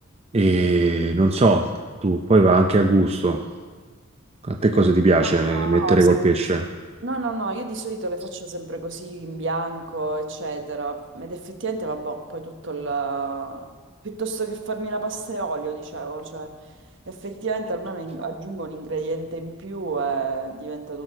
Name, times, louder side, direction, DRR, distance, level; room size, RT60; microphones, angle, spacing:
voice 1, 0.3-1.7 2.0-3.4 4.4-6.7, right 2 dB, 30° right, 4 dB, 0.5 m, -18 dB
voice 2, 5.2-6.1 7.0-13.7 14.0-16.5 17.1-21.0, right 3 dB, 65° right, 5 dB, 1.2 m, -30 dB
16.5 x 6.4 x 6.6 m, 1.5 s
head